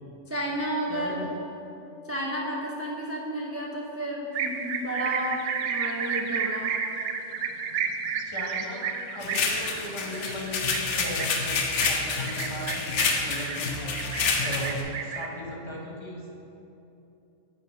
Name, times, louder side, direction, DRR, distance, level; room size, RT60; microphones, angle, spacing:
voice 1, 0.3-1.3 2.0-7.0, right 1 dB, 25° right, -2 dB, 0.3 m, -32 dB
voice 2, 0.9-1.3 8.2-8.9 9.1-13.8 14.4-16.4, left 1 dB, 30° left, -2 dB, 0.9 m, -37 dB
sound 1, 4.3-15.3, right 6 dB, 70° right, 0.8 m, -32 dB
sound 2, 9.2-14.8, left 4 dB, 90° left, 1.1 m, -28 dB
5.5 x 5.5 x 6.0 m, 2.9 s
omnidirectional pair, 1.2 m